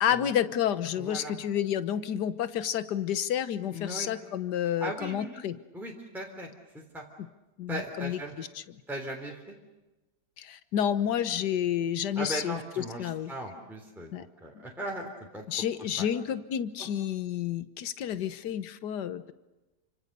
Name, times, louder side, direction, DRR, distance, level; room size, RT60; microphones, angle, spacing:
voice 1, 0.0-5.6 7.6-8.5 10.4-13.3 14.1-14.2 15.5-19.3, left 9 dB, 60° left, 13 dB, 1.6 m, -30 dB
voice 2, 1.0-1.3 3.7-4.1 4.8-5.4 5.7-7.0 7.7-8.3 8.9-9.4 12.1-15.4 16.0-16.1 16.8-16.9, right 1 dB, ahead, -1 dB, 3.3 m, -38 dB
29.5 x 26.0 x 6.8 m, 1.1 s
omnidirectional pair, 2.1 m